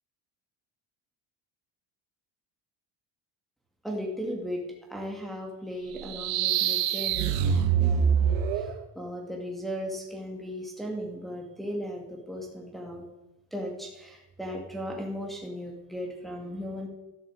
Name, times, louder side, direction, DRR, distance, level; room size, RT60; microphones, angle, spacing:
voice 1, 3.8-4.6 4.9-13.1 13.5-16.9, equal, ahead, -1 dB, 2.3 m, -37 dB
sound 1, 5.9-8.8, right 8 dB, 70° right, 1.3 m, -25 dB
13.0 x 7.5 x 7.9 m, 1.0 s
cardioid pair, 125°, 46 cm